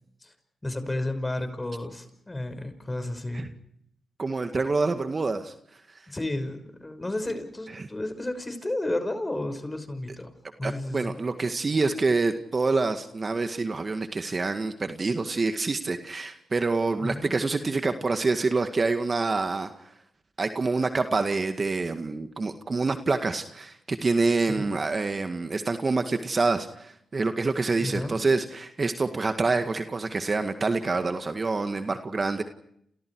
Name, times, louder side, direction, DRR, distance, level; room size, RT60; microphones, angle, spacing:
voice 1, 0.6-3.5 6.1-10.3 10.6-11.2 17.0-17.3 24.6-24.8 27.8-28.2, left 1 dB, 20° left, 9 dB, 5.7 m, -32 dB
voice 2, 4.2-5.5 7.8-7.9 10.6-19.7 20.4-32.4, right 3 dB, 40° right, 7 dB, 1.9 m, -26 dB
30.0 x 29.0 x 4.8 m, 0.73 s
supercardioid pair, 50°, 0 cm